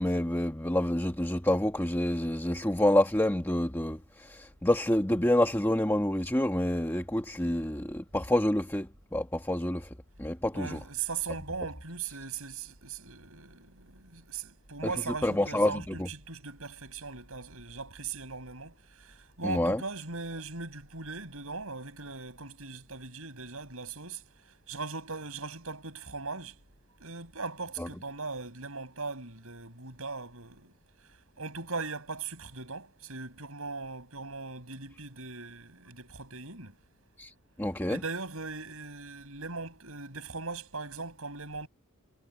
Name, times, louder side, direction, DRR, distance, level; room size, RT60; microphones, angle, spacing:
voice 1, 0.0-8.9 9.1-9.9 10.2-10.8 15.2-16.1 19.4-19.8 27.8-27.9 37.2-37.3 37.6-38.0, left 1 dB, 10° left, 1.6 m, -28 dB
voice 2, 10.5-24.2 24.7-26.5 27.0-30.7 31.4-36.7 37.9-41.7, right 4 dB, 70° right, 6.9 m, -39 dB
head